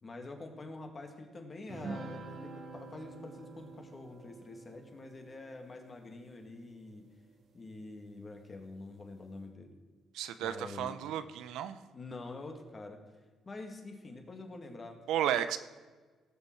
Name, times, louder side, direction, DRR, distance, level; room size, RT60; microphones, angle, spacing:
voice 1, 0.0-7.1 7.5-9.7 10.4-11.0 11.9-13.0 13.5-15.0, left 2 dB, 35° left, 4 dB, 2.0 m, -46 dB
sound 1, 1.7-7.3, right 3 dB, 65° right, 1.8 m, -48 dB
voice 2, 10.1-11.8 15.1-15.6, right 10 dB, 90° right, 12 dB, 0.6 m, -33 dB
17.5 x 7.0 x 4.6 m, 1.4 s
cardioid pair, 90°, 0 cm